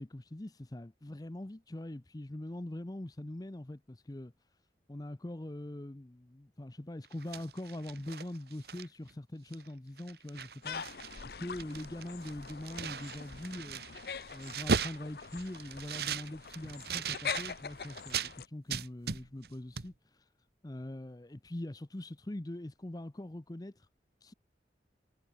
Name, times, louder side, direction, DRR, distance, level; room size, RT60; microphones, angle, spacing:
voice 1, 0.0-4.6 4.9-10.8 11.2-13.8 14.3-20.3 20.6-23.9 24.2-24.3, left 1 dB, 20° left, 0.6 m, -43 dB
sound 1, 7.0-9.1 9.5-9.7 10.0-11.2 11.5-18.3 18.7-19.5 19.8-19.9, right 5 dB, 60° right, 1.2 m, -38 dB
sound 2, 10.6-18.5, left 6 dB, 60° left, 0.6 m, -43 dB
head